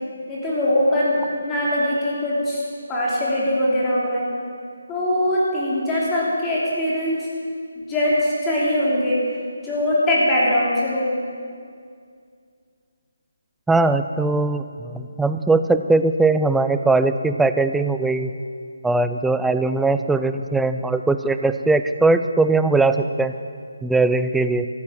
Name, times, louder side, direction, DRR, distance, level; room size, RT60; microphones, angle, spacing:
voice 1, 0.3-1.1 1.4-2.6 2.9-4.2 4.9-7.2 7.9-9.2 9.6-11.1, left 1 dB, 15° left, -7 dB, 3.1 m, -21 dB
voice 2, 13.7-18.3 18.8-23.3 23.8-24.7, right 3 dB, 5° right, 10 dB, 0.4 m, -20 dB
14.5 x 7.9 x 7.4 m, 2.2 s
figure-of-eight pair, 155°, 0 cm